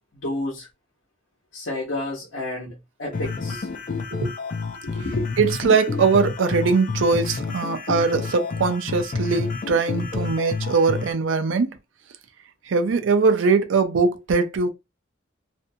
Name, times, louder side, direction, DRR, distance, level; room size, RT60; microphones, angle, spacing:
voice 1, 0.2-0.7 1.5-3.7 4.8-5.3, left 1 dB, 75° left, 0.9 m, -30 dB
sound 1, 3.1-11.1, left 4 dB, 40° left, 0.4 m, -29 dB
voice 2, 5.4-11.7 12.7-14.7, right 4 dB, 75° right, 0.4 m, -21 dB
2.6 x 2.1 x 2.7 m
head